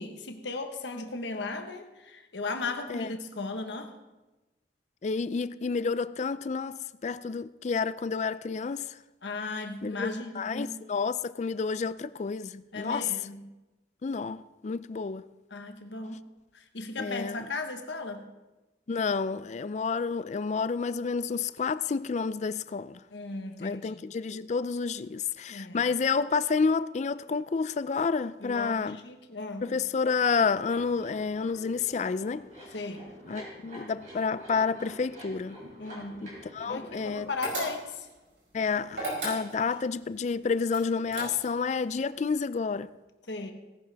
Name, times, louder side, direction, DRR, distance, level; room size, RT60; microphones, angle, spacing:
voice 1, 0.0-3.9 9.2-10.7 12.7-13.4 15.5-16.2 16.5-18.2 23.1-24.0 25.5-25.9 28.4-29.7 32.7-33.0 35.8-36.2 36.7-38.1 43.3-43.5, left 3 dB, 85° left, 1.3 m, -36 dB
voice 2, 5.0-9.0 9.8-13.1 14.0-15.2 17.0-17.5 18.9-23.0 23.6-29.0 29.6-32.5 33.3-35.6 36.2-37.3 38.5-42.9, left 5 dB, 40° left, 0.3 m, -30 dB
sound 1, 30.4-37.5, equal, 45° right, 4.3 m, -47 dB
sound 2, 37.4-38.1 38.9-39.8 40.7-41.7, right 2 dB, 85° right, 5.1 m, -35 dB
18.0 x 11.0 x 3.5 m
head